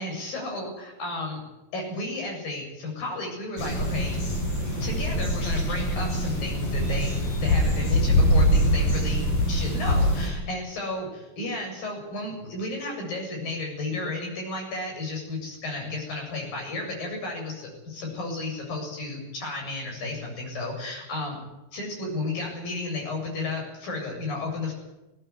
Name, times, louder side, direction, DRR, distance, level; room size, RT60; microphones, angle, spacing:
voice 1, 0.0-1.4 1.7-4.2 4.8-21.4 21.7-24.7, left 2 dB, 55° left, 1 dB, 9.4 m, -33 dB
sound 1, 3.6-10.3, equal, 35° left, 7.4 m, -23 dB
21.0 x 17.5 x 9.8 m, 0.98 s
omnidirectional pair, 4.8 m